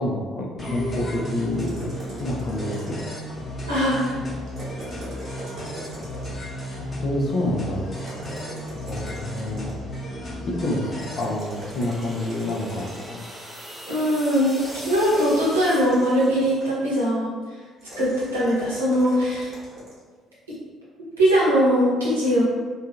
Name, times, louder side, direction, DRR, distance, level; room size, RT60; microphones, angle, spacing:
voice 1, 0.0-1.8 2.2-3.0 7.0-8.0 8.9-9.7 10.5-13.2, left 1 dB, 45° left, -1 dB, 0.5 m, -28 dB
sound 1, 0.6-11.2, equal, 30° left, 0.9 m, -34 dB
sound 2, 1.5-3.4 4.4-6.5 8.0-9.9 11.0-13.4 14.6-16.8 17.8-20.0, equal, 45° right, 1.0 m, -41 dB
voice 2, 3.7-4.2 13.8-17.3 18.0-19.5 21.2-22.4, equal, 80° right, -8 dB, 0.8 m, -21 dB
sound 3, 10.9-16.8, equal, 5° right, 0.5 m, -41 dB
2.6 x 2.3 x 2.3 m, 1.5 s
figure-of-eight pair, 50°, 0 cm